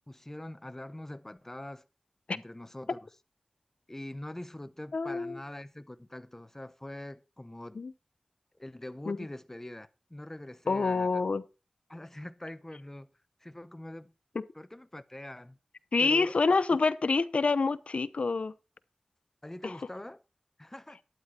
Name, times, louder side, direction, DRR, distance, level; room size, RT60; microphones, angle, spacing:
voice 1, 0.1-1.8 2.3-3.0 3.9-7.8 8.5-11.2 11.9-13.1 13.4-14.1 14.5-15.6 16.0-16.6 19.4-20.2 20.6-21.0, left 1 dB, 20° left, 0.8 m, -43 dB
voice 2, 4.9-5.4 7.7-7.9 9.1-9.2 10.7-11.4 14.3-14.5 15.9-18.5 19.6-19.7, left 4 dB, 75° left, 0.7 m, -27 dB
12.0 x 9.6 x 4.3 m
wide cardioid pair, 80°, 2 cm